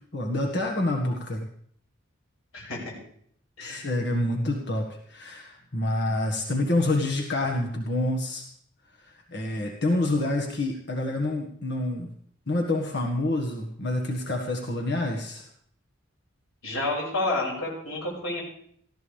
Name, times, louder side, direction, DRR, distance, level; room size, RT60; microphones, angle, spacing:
voice 1, 0.1-1.5 3.6-8.4 9.3-12.1 12.5-15.4, left 1 dB, 55° left, 1 dB, 1.8 m, -27 dB
voice 2, 2.5-2.9 3.6-3.9 16.6-18.4, left 2 dB, 85° left, -4 dB, 6.3 m, -30 dB
19.0 x 15.0 x 3.5 m, 0.63 s
head